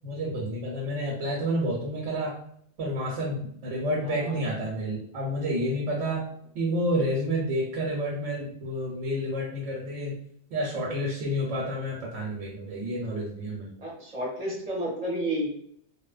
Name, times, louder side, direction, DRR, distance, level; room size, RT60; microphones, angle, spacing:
voice 1, 0.0-2.4 2.8-6.3 6.5-10.2 10.5-13.7, equal, 85° right, -3 dB, 1.0 m, -29 dB
voice 2, 4.0-4.4 13.8-15.5, right 1 dB, 40° right, -4 dB, 0.7 m, -31 dB
2.8 x 2.1 x 2.3 m, 0.66 s
omnidirectional pair, 1.2 m